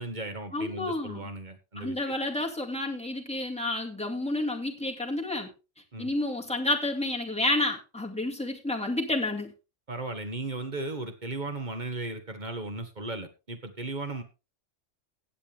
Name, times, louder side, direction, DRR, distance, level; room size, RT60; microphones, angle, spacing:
voice 1, 0.0-2.0 5.9-6.1 9.9-14.2, right 2 dB, 40° right, 7 dB, 1.8 m, -36 dB
voice 2, 0.5-1.3 1.8-5.5 6.0-9.5, left 2 dB, 5° left, 1 dB, 2.2 m, -30 dB
16.5 x 8.4 x 3.5 m, 0.29 s
omnidirectional pair, 1.3 m